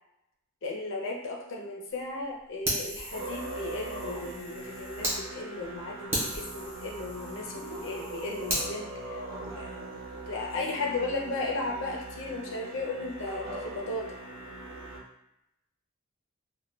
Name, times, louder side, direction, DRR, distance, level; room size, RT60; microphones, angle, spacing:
voice 1, 0.6-9.2 9.6-9.9 10.3-14.1, left 2 dB, 65° left, 0 dB, 0.5 m, -35 dB
Fire, 2.6-5.2 5.6-5.7 6.1-8.7, equal, 10° right, 0.7 m, -35 dB
Musical instrument, 3.1-15.0, right 2 dB, 65° right, 0.6 m, -41 dB
2.2 x 2.1 x 3.2 m, 0.81 s
head